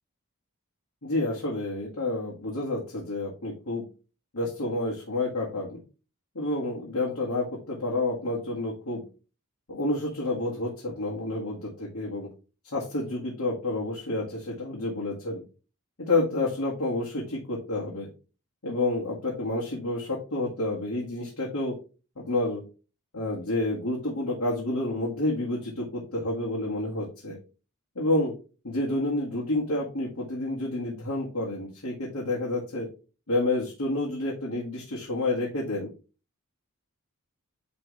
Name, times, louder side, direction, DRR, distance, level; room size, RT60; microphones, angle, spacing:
voice 1, 1.0-3.8 4.3-5.8 6.4-9.0 9.7-12.3 12.6-15.4 16.0-18.1 18.6-21.7 22.2-22.6 23.1-27.4 28.0-28.3 28.6-32.9 33.3-35.9, left 2 dB, 90° left, -4 dB, 1.8 m, -29 dB
8.7 x 3.5 x 3.2 m, 0.33 s
head